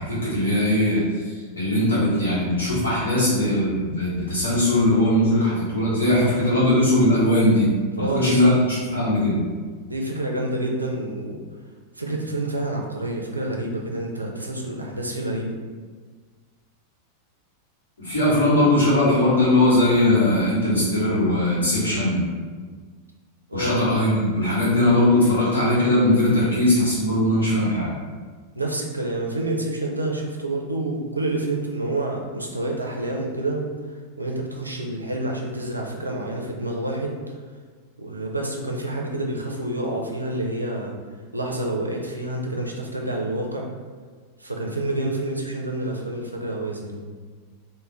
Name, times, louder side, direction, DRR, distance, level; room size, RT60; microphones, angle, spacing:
voice 1, 0.0-7.7 8.0-8.5 8.9-9.4 18.0-22.2 23.5-27.9, left 1 dB, 75° left, -8 dB, 1.1 m, -20 dB
voice 2, 7.9-8.5 9.9-11.4 11.9-15.5 23.5-23.9 28.5-33.7 34.2-37.2 38.0-40.9 41.3-43.7 44.4-47.0, right 1 dB, 85° right, 0 dB, 0.4 m, -28 dB
2.4 x 2.1 x 3.1 m, 1.5 s
figure-of-eight pair, 90°, 0 cm